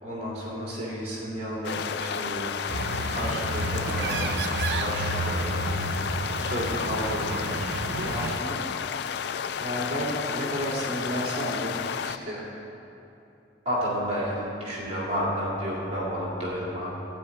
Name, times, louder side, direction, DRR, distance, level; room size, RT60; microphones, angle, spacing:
voice 1, 0.0-2.6 3.1-4.4 4.8-5.5 6.4-7.7 8.0-8.6 9.6-12.4 13.6-17.1, equal, 40° right, -5 dB, 2.5 m, -31 dB
sound 1, 1.6-12.2, left 7 dB, 70° left, 0.3 m, -32 dB
sound 2, 2.7-8.4, right 2 dB, 70° right, 0.6 m, -31 dB
12.5 x 4.9 x 8.3 m, 2.8 s
head